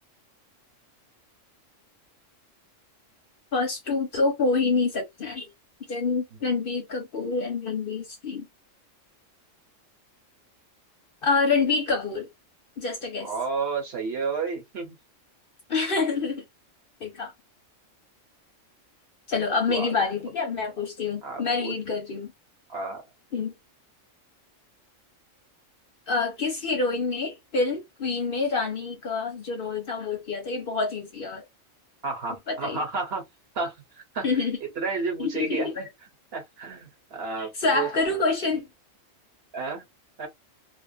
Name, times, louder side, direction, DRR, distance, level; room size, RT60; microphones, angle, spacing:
voice 1, 3.5-5.5 5.9-8.5 11.2-12.3 12.8-13.3 15.7-16.4 17.0-17.3 19.3-22.3 23.3-23.5 26.1-31.4 32.5-32.8 34.2-34.6 35.2-35.7 37.6-38.7, left 4 dB, 50° left, 0.8 m, -27 dB
voice 2, 13.2-15.0 19.7-19.9 21.2-21.7 22.7-23.0 32.0-33.2 33.5-33.7 34.1-34.3 34.8-35.9 36.3-37.9 39.5-39.8 40.2-40.3, right 4 dB, 55° right, 1.1 m, -31 dB
2.7 x 2.3 x 2.3 m
omnidirectional pair, 1.3 m